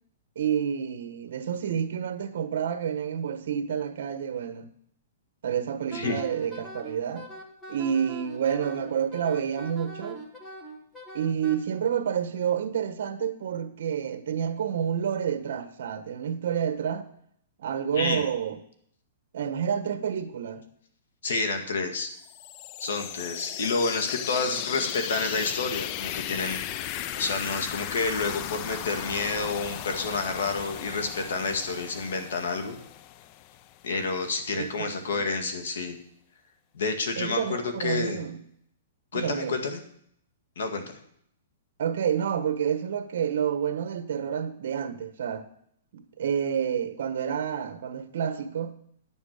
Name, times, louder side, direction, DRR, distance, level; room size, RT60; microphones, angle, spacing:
voice 1, 0.3-4.7 5.4-7.3 7.7-10.2 11.1-17.1 17.6-18.6 19.3-20.6 34.5-35.2 37.2-38.4 39.1-39.6 41.8-45.5 45.9-48.8, right 8 dB, 60° right, 1.3 m, -29 dB
Wind instrument woodwind instrument, 5.9-11.6, right 1 dB, 5° left, 1.7 m, -42 dB
voice 2, 17.9-18.3 21.2-22.1 22.8-26.6 26.9-32.8 33.8-36.0 36.7-38.2 39.1-39.8 40.6-41.0, left 3 dB, 85° left, 1.9 m, -29 dB
sound 1, 22.2-33.9, left 13 dB, 30° left, 0.3 m, -36 dB
10.5 x 7.3 x 6.6 m
hypercardioid pair, 170°, 0 cm